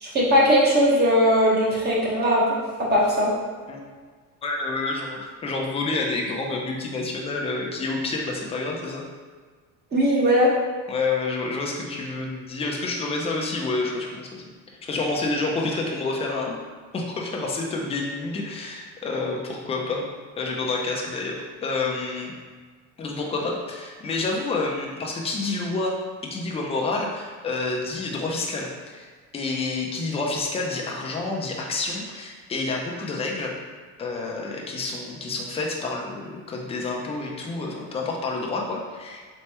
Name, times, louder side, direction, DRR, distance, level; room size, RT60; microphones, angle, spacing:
voice 1, 0.0-3.3 9.9-10.5, equal, 30° right, -5 dB, 1.1 m, -19 dB
voice 2, 4.4-9.0 10.9-14.4 14.8-16.6 16.9-20.1 20.4-22.3 23.0-26.0 26.2-33.6 34.0-39.2, left 3 dB, 20° left, -1 dB, 0.5 m, -28 dB
4.3 x 3.3 x 3.0 m, 1.5 s
cardioid pair, 150°, 34 cm